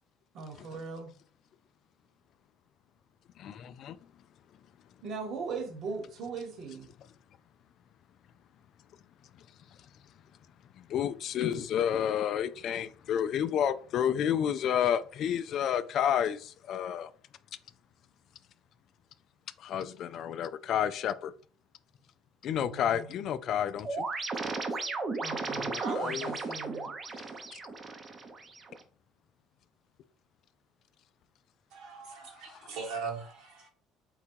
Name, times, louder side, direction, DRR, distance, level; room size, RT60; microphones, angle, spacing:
voice 1, 0.3-1.1 5.0-6.9 22.5-23.3 25.2-26.9, right 4 dB, 60° right, 1.1 m, -39 dB
voice 2, 3.4-4.0 10.8-17.1 19.6-21.3 22.4-24.1 25.5-26.3 27.5-27.6 32.4-32.8, left 9 dB, 60° left, 0.3 m, -30 dB
sound 1, 23.8-28.8, right 3 dB, 30° right, 0.7 m, -35 dB
voice 3, 31.7-33.7, right 5 dB, 75° right, 1.4 m, -40 dB
3.9 x 2.2 x 4.5 m
supercardioid pair, 90°, 0 cm